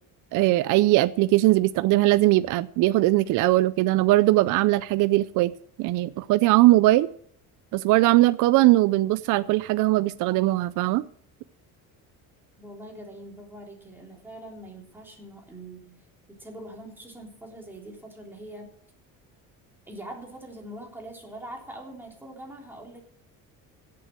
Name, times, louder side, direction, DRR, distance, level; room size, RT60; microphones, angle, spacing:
voice 1, 0.3-5.5 5.8-7.1 7.7-11.0, right 17 dB, 60° right, 15 dB, 0.5 m, -20 dB
voice 2, 12.6-18.7 19.9-23.0, right 1 dB, 5° right, -1 dB, 3.5 m, -43 dB
16.5 x 7.8 x 6.2 m, 0.64 s
cardioid pair, 150°, 35 cm